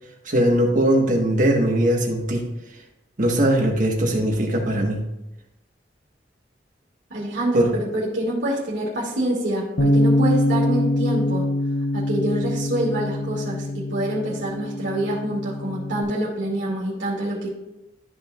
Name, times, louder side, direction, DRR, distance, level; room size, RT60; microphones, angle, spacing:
voice 1, 0.2-2.4 3.2-5.0 7.5-7.7, right 1 dB, 45° right, 1 dB, 1.5 m, -20 dB
voice 2, 7.1-11.4 11.9-17.5, right 1 dB, 85° right, -6 dB, 2.3 m, -26 dB
Bass guitar, 9.8-16.0, left 1 dB, 55° left, 1.0 m, -23 dB
13.0 x 5.8 x 2.5 m, 0.92 s
head